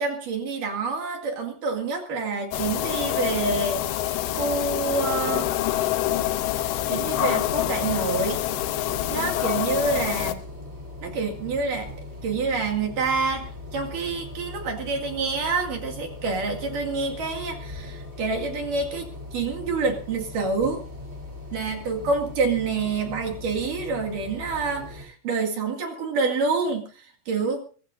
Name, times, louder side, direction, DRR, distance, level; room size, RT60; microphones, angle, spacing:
voice 1, 0.0-3.8 4.4-5.5 6.8-8.4 9.1-10.4 11.0-11.9 12.2-20.8 21.5-27.6, right 4 dB, 50° right, 3 dB, 3.4 m, -27 dB
sound 1, 2.5-10.3, left 13 dB, 75° left, 2.4 m, -26 dB
sound 2, 7.0-25.0, left 2 dB, 10° right, 3.6 m, -40 dB
23.5 x 16.5 x 2.6 m, 0.40 s
omnidirectional pair, 5.3 m